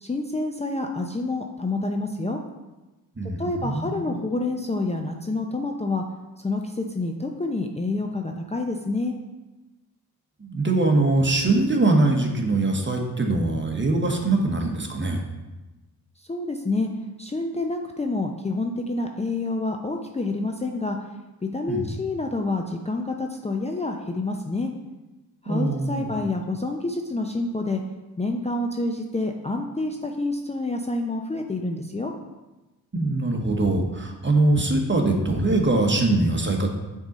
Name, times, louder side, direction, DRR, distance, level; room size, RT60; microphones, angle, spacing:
voice 1, 0.0-2.4 3.4-6.0 6.4-9.2 16.3-16.9 17.2-21.0 21.5-24.7 25.4-27.8 28.2-32.1, left 2 dB, 15° left, 3 dB, 0.6 m, -28 dB
voice 2, 3.2-4.1 10.4-15.2 21.7-22.0 25.5-26.2 32.9-36.7, right 2 dB, 25° right, 2 dB, 1.3 m, -22 dB
6.0 x 3.9 x 4.2 m, 1.1 s
supercardioid pair, 45°, 42 cm